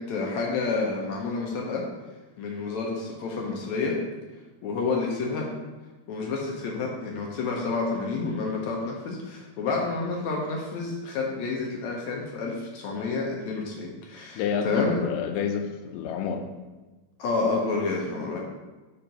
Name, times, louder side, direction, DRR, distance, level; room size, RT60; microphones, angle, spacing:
voice 1, 0.0-1.9 2.4-4.0 4.6-5.5 6.1-15.0 17.2-18.4, left 4 dB, 75° left, -1 dB, 1.8 m, -29 dB
voice 2, 14.4-16.5, left 7 dB, 90° left, 5 dB, 2.2 m, -29 dB
5.5 x 4.3 x 5.0 m, 1.2 s
omnidirectional pair, 3.8 m